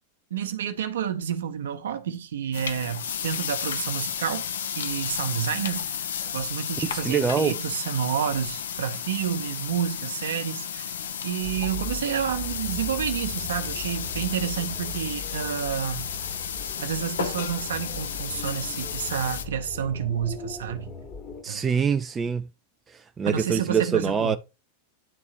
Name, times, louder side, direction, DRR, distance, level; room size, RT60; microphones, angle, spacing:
voice 1, 0.3-4.4 4.7-6.1 6.3-10.9 11.2-16.1 16.8-20.9 21.5-21.8 23.2-24.4, right 8 dB, 65° right, 0.9 m, -29 dB
sound 1, 2.5-19.4, left 8 dB, 65° left, 0.6 m, -33 dB
voice 2, 6.9-7.6 21.4-22.5 23.2-24.4, right 6 dB, 20° right, 0.4 m, -24 dB
sound 2, 11.4-21.4, left 3 dB, 35° left, 1.2 m, -39 dB
10.0 x 3.6 x 2.9 m
figure-of-eight pair, 90°, 0 cm